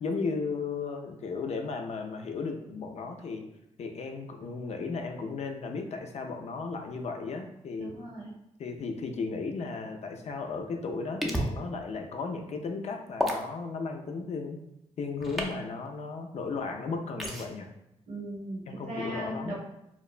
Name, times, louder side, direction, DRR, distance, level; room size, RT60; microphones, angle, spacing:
voice 1, 0.0-3.4 3.8-7.9 8.6-14.6 15.0-17.7 18.7-19.5, left 4 dB, 65° left, 4 dB, 0.4 m, -35 dB
voice 2, 7.8-8.3 18.1-19.5, right 1 dB, 70° right, -4 dB, 1.1 m, -37 dB
sound 1, 11.2-11.5 13.2-13.4 15.2-15.5 17.2-17.5, equal, ahead, 0.5 m, -30 dB
2.8 x 2.1 x 2.4 m, 0.85 s
cardioid pair, 60°, 12 cm